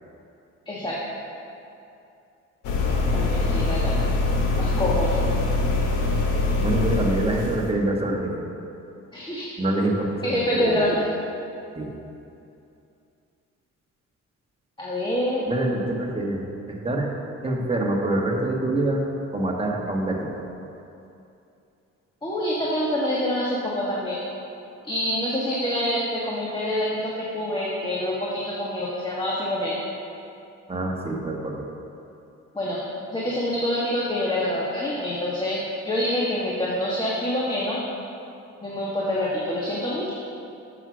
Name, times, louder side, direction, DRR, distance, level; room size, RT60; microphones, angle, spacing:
voice 1, 0.7-1.0 3.1-3.9 4.6-5.2 9.1-9.5 10.2-11.0 14.8-15.5 22.2-24.2 24.8-29.8 32.5-32.8 33.1-37.8 38.6-40.1, left 1 dB, 15° left, -5 dB, 1.4 m, -26 dB
sound 1, 2.6-7.7, left 2 dB, 90° left, 1.1 m, -23 dB
voice 2, 6.6-8.3 9.6-10.1 10.5-10.8 11.7-11.9 15.5-17.1 17.4-19.1 19.3-20.4 30.7-31.7, right 2 dB, 20° right, -1 dB, 1.4 m, -25 dB
7.7 x 6.1 x 6.2 m, 2.7 s
cardioid pair, 90°, 30 cm